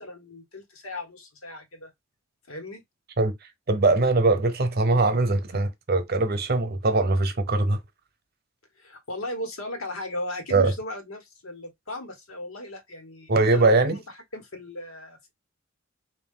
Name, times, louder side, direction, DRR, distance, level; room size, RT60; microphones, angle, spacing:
voice 1, 0.0-1.9 2.5-2.8 8.8-14.0 14.3-15.3, left 1 dB, 85° left, 1.3 m, -37 dB
voice 2, 3.7-7.8 10.5-10.7 13.3-14.0, right 3 dB, 50° right, 0.8 m, -21 dB
3.7 x 2.6 x 3.7 m
head